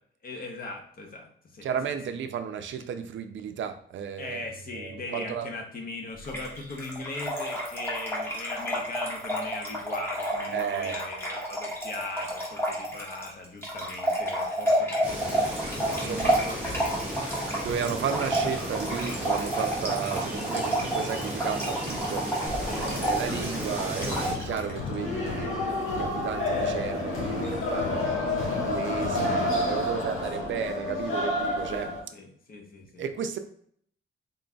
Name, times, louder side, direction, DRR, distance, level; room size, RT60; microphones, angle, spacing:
voice 1, 0.2-1.7 4.2-17.3 20.0-20.2 20.5-20.7 22.7-22.9 23.2-23.4 29.9-30.5 30.9-31.0 31.7-33.0, left 2 dB, 45° left, 2 dB, 0.8 m, -40 dB
voice 2, 1.6-4.4 4.7-5.5 10.5-11.0 15.9-16.3 17.6-22.5 22.8-25.6 25.9-32.0 33.0-33.4, right 7 dB, 65° right, 8 dB, 0.5 m, -33 dB
Trickle dribble / Fill (with liquid), 6.2-24.7, right 1 dB, 10° left, 0.9 m, -30 dB
sound 1, 15.0-24.3, equal, 5° right, 1.1 m, -34 dB
sound 2, 22.5-32.0, left 2 dB, 80° left, 1.5 m, -30 dB
3.9 x 3.7 x 2.3 m, 0.64 s
wide cardioid pair, 160°, 21 cm